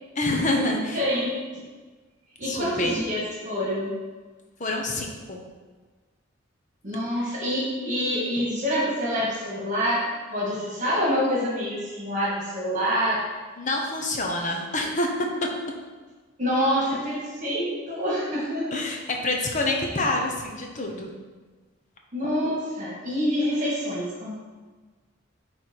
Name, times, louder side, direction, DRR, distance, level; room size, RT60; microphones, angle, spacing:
voice 1, 0.2-1.0 2.4-3.0 4.6-5.4 7.2-7.3 13.6-15.5 18.7-21.1, left 2 dB, 35° left, 2 dB, 0.9 m, -27 dB
voice 2, 0.9-1.3 2.4-3.9 6.8-13.2 16.4-18.7 22.1-24.4, equal, 35° right, -5 dB, 1.9 m, -26 dB
9.9 x 3.4 x 4.6 m, 1.4 s
head